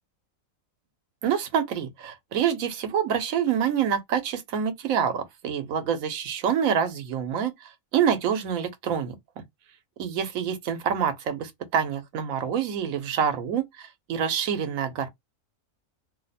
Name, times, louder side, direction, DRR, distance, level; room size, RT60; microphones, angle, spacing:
voice 1, 1.2-9.4 10.0-15.1, right 8 dB, 85° right, 1.2 m, -27 dB
2.8 x 2.1 x 4.0 m
omnidirectional pair, 1.4 m